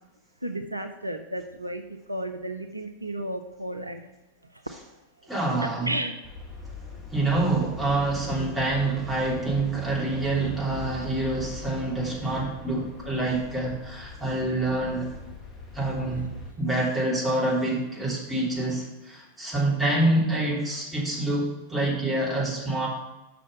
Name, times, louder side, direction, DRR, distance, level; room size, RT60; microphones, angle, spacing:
voice 1, 0.4-4.0 4.4-4.6 5.6-6.2 7.2-7.3 16.2-16.3, right 1 dB, 85° right, 6 dB, 0.5 m, -33 dB
voice 2, 5.3-5.9 7.1-15.1 15.7-16.3 16.6-22.9, right 2 dB, 5° right, -6 dB, 3.1 m, -26 dB
sound 1, 6.2-16.5, left 3 dB, 25° left, 1.6 m, -41 dB
6.2 x 5.9 x 6.9 m, 1.0 s
figure-of-eight pair, 90°, 0 cm